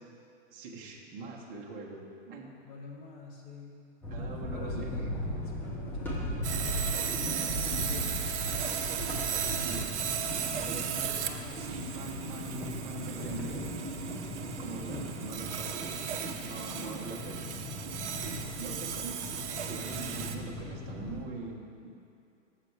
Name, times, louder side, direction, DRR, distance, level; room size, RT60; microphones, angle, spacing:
voice 1, 0.5-2.5 4.1-5.0 5.7-5.8 9.6-9.9 10.6-13.6 14.6-16.1 16.4-17.5 18.6-21.9, right 3 dB, 25° right, -2 dB, 1.0 m, -43 dB
voice 2, 2.6-3.8 4.5-5.1 5.4-8.3 10.6-11.3 13.1-13.6 16.6-17.3, left 3 dB, 40° left, -1 dB, 1.4 m, -48 dB
sound 1, 4.0-21.2, left 1 dB, 5° left, 0.6 m, -38 dB
Sawing, 6.4-20.4, right 8 dB, 60° right, 0.7 m, -36 dB
7.8 x 6.8 x 4.6 m, 2.5 s
hypercardioid pair, 135°, 38 cm